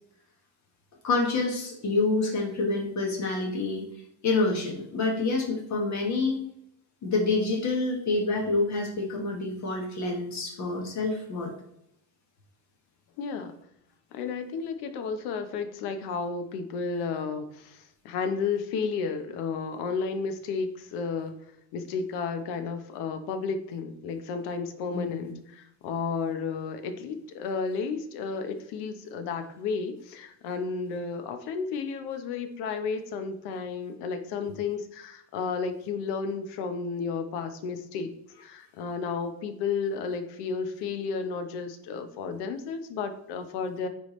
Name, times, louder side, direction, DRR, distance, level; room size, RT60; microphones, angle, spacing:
voice 1, 1.0-3.9 4.2-6.4 7.0-11.5 24.9-25.3, left 3 dB, 40° left, 0 dB, 1.5 m, -27 dB
voice 2, 13.2-13.5 14.1-21.3 21.7-38.1 38.4-43.9, left 5 dB, 70° left, 8 dB, 1.0 m, -32 dB
9.5 x 3.4 x 3.2 m, 0.77 s
cardioid pair, 135°, 42 cm